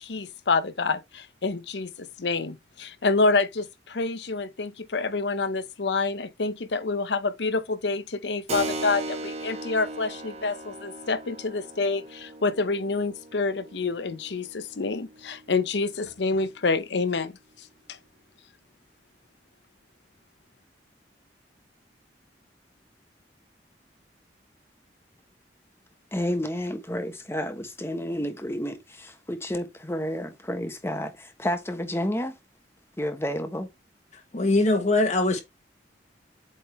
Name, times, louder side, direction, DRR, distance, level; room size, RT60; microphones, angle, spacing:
voice 1, 0.0-18.0, left 3 dB, 80° left, 0.8 m, -27 dB
Keyboard (musical), 8.5-16.7, right 2 dB, 40° right, 1.1 m, -38 dB
voice 2, 26.1-32.3 33.0-33.7, equal, 15° left, 1.1 m, -30 dB
voice 3, 34.3-35.4, left 2 dB, 40° left, 1.4 m, -22 dB
8.3 x 3.8 x 3.5 m
head